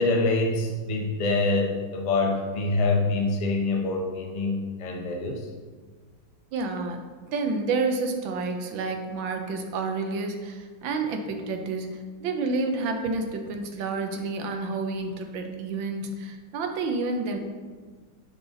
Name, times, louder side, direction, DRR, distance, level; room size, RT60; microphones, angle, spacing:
voice 1, 0.0-5.5, left 2 dB, 40° left, 1 dB, 0.5 m, -25 dB
voice 2, 6.5-17.4, right 3 dB, 85° right, 5 dB, 1.6 m, -29 dB
10.0 x 4.0 x 3.9 m, 1.5 s
omnidirectional pair, 2.1 m